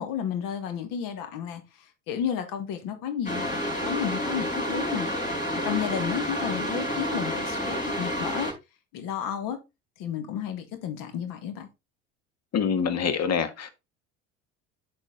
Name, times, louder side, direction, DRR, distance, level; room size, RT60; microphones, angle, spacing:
voice 1, 0.0-1.6 2.1-5.1 5.5-8.5 8.9-9.6 10.0-11.7, left 8 dB, 65° left, 2.0 m, -32 dB
sound 1, 3.2-8.5, equal, 20° left, 4.8 m, -29 dB
voice 2, 12.5-13.7, left 7 dB, 45° left, 1.6 m, -25 dB
8.6 x 4.8 x 3.9 m
hypercardioid pair, 75°, 36 cm